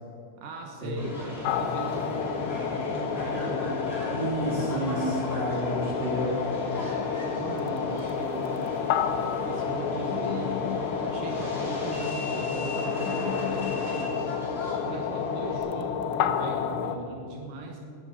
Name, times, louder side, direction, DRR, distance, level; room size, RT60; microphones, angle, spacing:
voice 1, 0.4-3.8 6.7-8.6 9.4-10.7 11.0-14.2 14.7-17.8, right 3 dB, 80° right, 2 dB, 1.9 m, -39 dB
Subway metro underground, 1.0-15.6, left 1 dB, 10° left, 4.1 m, -38 dB
sound 1, 1.4-17.0, left 7 dB, 80° left, 3.2 m, -30 dB
sound 2, 3.3-17.0, left 1 dB, 55° right, 6.1 m, -43 dB
voice 2, 4.1-6.3, right 1 dB, 25° right, -4 dB, 4.0 m, -30 dB
19.5 x 9.8 x 6.6 m, 2.6 s
omnidirectional pair, 5.6 m